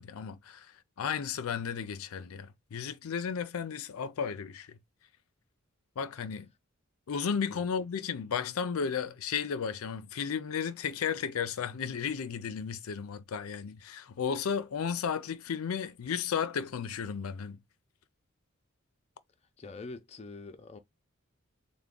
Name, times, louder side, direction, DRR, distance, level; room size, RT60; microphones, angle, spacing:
voice 1, 0.0-4.8 6.0-6.5 7.1-17.6, left 7 dB, 90° left, 0.4 m, -34 dB
voice 2, 19.6-20.8, left 3 dB, 30° left, 0.5 m, -44 dB
3.4 x 2.2 x 3.6 m
head